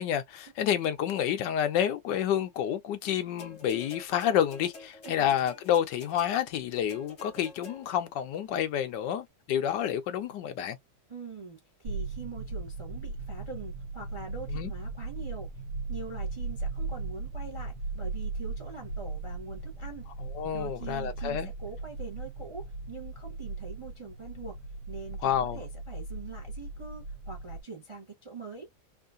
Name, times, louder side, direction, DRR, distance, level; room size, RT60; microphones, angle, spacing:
voice 1, 0.0-10.8 14.5-14.7 20.2-21.5 25.2-25.6, left 10 dB, 75° left, 1.2 m, -29 dB
sound 1, 3.4-8.1 9.1-9.2, left 2 dB, 40° left, 1.4 m, -49 dB
voice 2, 11.1-15.5 15.9-20.1 20.5-24.6 24.9-28.7, right 4 dB, 30° right, 0.5 m, -43 dB
sound 2, 11.8-27.6, right 3 dB, 75° right, 1.3 m, -38 dB
3.7 x 2.5 x 2.4 m
omnidirectional pair, 2.0 m